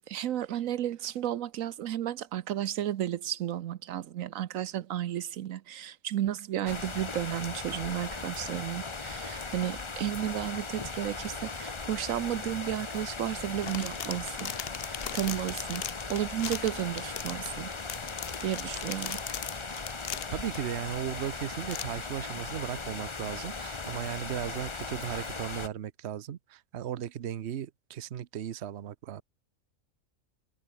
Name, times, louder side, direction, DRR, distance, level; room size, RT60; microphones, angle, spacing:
voice 1, 0.1-14.5 14.9-15.8 16.1-17.7 18.4-19.2, right 11 dB, 80° right, 1.1 m, -33 dB
sound 1, 6.7-25.7, left 4 dB, 25° left, 1.0 m, -38 dB
sound 2, 13.4-20.6 21.2-21.3 21.7-21.8, left 10 dB, 55° left, 0.8 m, -39 dB
voice 2, 20.3-29.2, right 10 dB, 55° right, 1.0 m, -36 dB
omnidirectional pair, 1.4 m